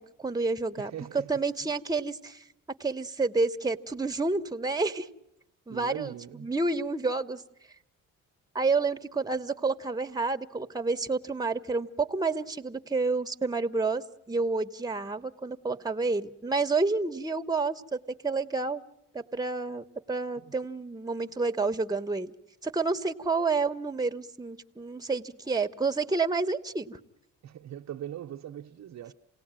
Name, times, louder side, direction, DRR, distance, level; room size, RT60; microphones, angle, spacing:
voice 1, 0.0-0.9 1.3-2.4 2.8-5.1 5.7-6.1 6.4-7.4 8.5-18.8 19.1-22.3 22.6-27.0, right 3 dB, 15° right, 1.3 m, -29 dB
voice 2, 0.8-1.7 5.7-6.5 20.4-20.6 23.2-23.4 27.4-29.1, right 11 dB, 65° right, 0.9 m, -41 dB
28.5 x 18.0 x 9.1 m
cardioid pair, 90°, 30 cm